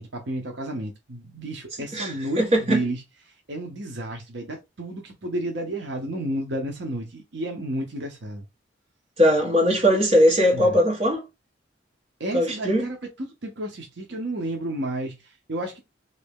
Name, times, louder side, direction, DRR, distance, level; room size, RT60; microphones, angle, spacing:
voice 1, 0.0-3.0 3.5-8.4 10.5-10.7 12.2-15.8, right 1 dB, 65° right, 0.7 m, -31 dB
voice 2, 1.9-2.8 9.2-11.2 12.3-12.9, equal, 30° right, 1.2 m, -20 dB
3.1 x 2.7 x 3.5 m
head